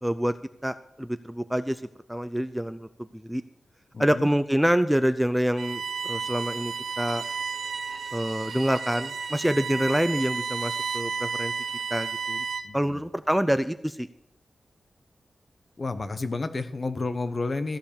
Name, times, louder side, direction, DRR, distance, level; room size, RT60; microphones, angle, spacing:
voice 1, 0.0-0.3 0.6-1.8 2.1-3.4 4.0-7.2 8.1-11.5 11.9-12.4 12.7-14.1, equal, 5° right, 11 dB, 0.5 m, -26 dB
voice 2, 3.9-4.3 12.6-13.0 15.8-17.8, left 3 dB, 45° left, 10 dB, 0.9 m, -31 dB
Bowed string instrument, 5.6-12.8, right 5 dB, 85° right, 0.7 m, -32 dB
14.5 x 5.3 x 6.8 m, 0.76 s
wide cardioid pair, 85°, 0 cm